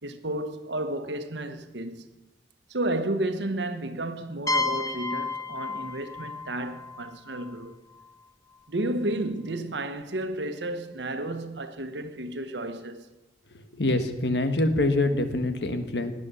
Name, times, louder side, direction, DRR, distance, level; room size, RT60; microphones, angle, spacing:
voice 1, 0.0-2.1 2.7-7.8 8.7-13.1, right 1 dB, 85° right, 1.4 m, -32 dB
sound 1, 4.5-8.1, left 3 dB, 20° left, 1.1 m, -32 dB
voice 2, 13.5-16.1, left 2 dB, 75° left, 1.5 m, -25 dB
18.5 x 9.8 x 7.0 m
head